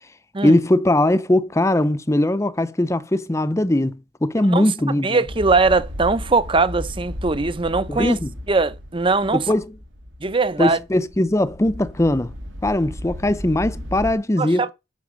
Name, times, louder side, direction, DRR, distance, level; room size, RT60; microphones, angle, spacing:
voice 1, 0.4-5.2 7.9-8.3 9.3-9.7 10.6-12.3 12.6-14.7, left 1 dB, 15° left, 0.6 m, -20 dB
voice 2, 5.0-8.2 8.5-9.5 10.2-10.8 14.4-14.7, right 3 dB, 25° right, 0.8 m, -20 dB
sound 1, 5.3-14.1, left 1 dB, 85° right, 3.0 m, -35 dB
8.4 x 6.1 x 7.5 m
head